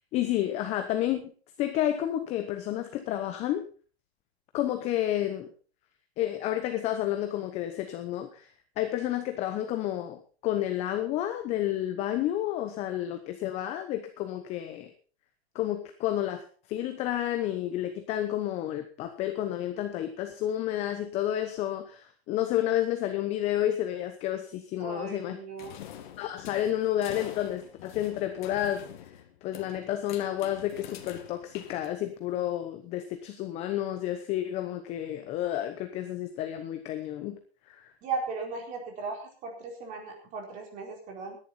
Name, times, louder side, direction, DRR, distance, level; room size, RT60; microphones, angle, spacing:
voice 1, 0.1-1.2 1.6-3.6 4.5-5.5 6.2-8.5 8.8-14.9 15.5-16.4 16.7-25.4 26.2-28.8 29.4-37.4 37.7-37.9, left 12 dB, 20° left, 8 dB, 0.9 m, -30 dB
voice 2, 24.8-25.8 38.0-41.4, right 4 dB, 25° right, 2 dB, 4.2 m, -37 dB
sound 1, 25.6-32.3, left 10 dB, 50° left, 2.0 m, -46 dB
17.0 x 11.0 x 4.3 m, 0.38 s
hypercardioid pair, 150°, 31 cm